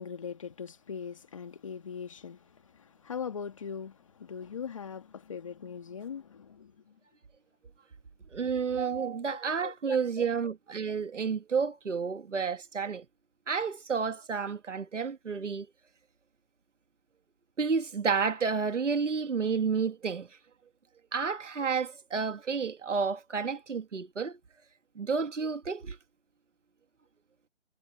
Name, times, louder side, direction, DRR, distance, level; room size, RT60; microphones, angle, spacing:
voice 1, 0.0-6.9 9.3-10.2, left 7 dB, 25° left, 2.1 m, -41 dB
voice 2, 8.3-13.1 13.5-15.7 17.6-20.3 21.1-24.4 25.0-26.0, right 5 dB, 70° right, 1.8 m, -30 dB
hypercardioid pair, 175°, 38 cm